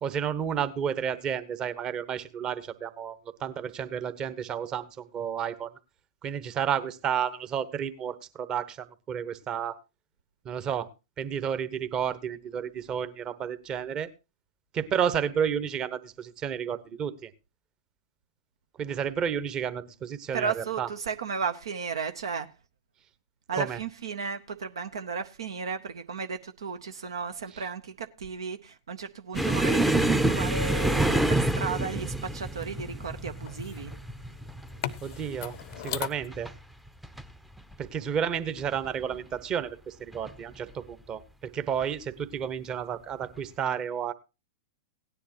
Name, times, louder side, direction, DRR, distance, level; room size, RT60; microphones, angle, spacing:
voice 1, 0.0-5.8 6.2-9.8 10.4-10.9 11.2-14.1 14.7-17.3 18.8-20.9 23.6-23.8 35.0-35.6 35.8-36.5 37.8-44.1, right 8 dB, 30° right, 1.0 m, -31 dB
voice 2, 20.3-22.5 23.5-33.9, right 5 dB, 75° right, 0.7 m, -34 dB
sound 1, 29.3-36.1, left 13 dB, 55° left, 0.6 m, -42 dB
sound 2, 29.3-36.6 36.9-37.2 37.6-37.7 38.6-39.1 40.1-40.3 41.7-41.8, right 1 dB, 5° right, 0.6 m, -27 dB
17.0 x 10.0 x 2.9 m
hypercardioid pair, 105°, 3 cm